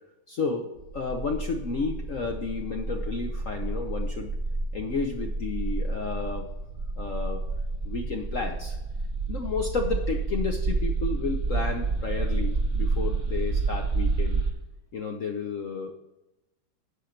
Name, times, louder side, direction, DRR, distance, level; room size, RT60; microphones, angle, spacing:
voice 1, 0.3-4.3 4.7-6.5 7.0-7.5 7.8-8.8 9.3-14.4 14.9-15.9, left 4 dB, 60° left, 4 dB, 0.9 m, -32 dB
sound 1, 0.8-14.5, right 3 dB, 35° right, 2.3 m, -29 dB
10.0 x 5.9 x 6.4 m, 0.97 s
omnidirectional pair, 2.2 m